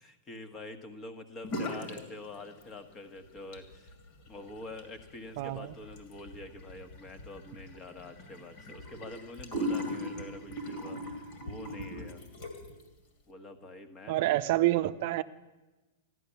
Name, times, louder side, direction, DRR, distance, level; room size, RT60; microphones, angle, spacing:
voice 1, 0.0-3.9 4.3-12.2 13.3-14.5, left 2 dB, 25° left, 9 dB, 1.4 m, -46 dB
sound 1, 1.4-2.0 2.3-3.0 3.4-12.8, equal, 50° left, 2.5 m, -39 dB
voice 2, 5.4-5.7 14.1-15.2, right 16 dB, 55° right, 11 dB, 0.5 m, -27 dB
14.0 x 11.0 x 7.1 m, 1.1 s
hypercardioid pair, 115°, 0 cm